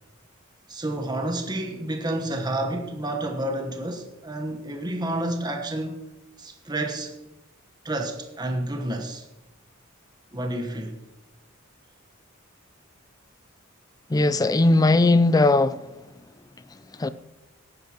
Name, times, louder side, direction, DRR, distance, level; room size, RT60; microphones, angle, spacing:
voice 1, 0.7-6.0 6.4-7.1 7.8-9.2 10.3-11.0, right 1 dB, 20° right, 1.1 m, -30 dB
voice 2, 14.1-15.8 17.0-17.1, left 2 dB, 20° left, 0.4 m, -18 dB
18.0 x 10.5 x 3.0 m
head